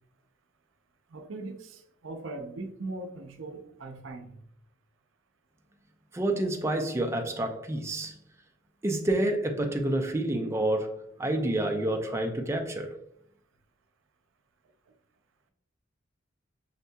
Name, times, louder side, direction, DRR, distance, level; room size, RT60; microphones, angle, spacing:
voice 1, 1.1-4.4, right 2 dB, 80° right, 0.5 m, -40 dB
voice 2, 6.1-8.1 8.8-12.9, right 1 dB, 15° right, 0.4 m, -28 dB
6.4 x 2.7 x 2.2 m
head